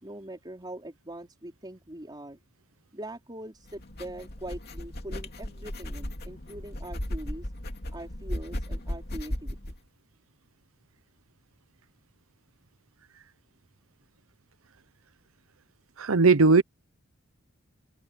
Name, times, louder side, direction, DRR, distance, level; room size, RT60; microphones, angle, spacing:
voice 1, 0.0-2.4 2.9-7.5 7.9-9.6, right 1 dB, 20° right, 4.7 m, -42 dB
sound 1, 3.6-9.8, left 1 dB, 50° left, 2.7 m, -36 dB
voice 2, 16.0-16.6, right 4 dB, 75° right, 0.8 m, -18 dB
head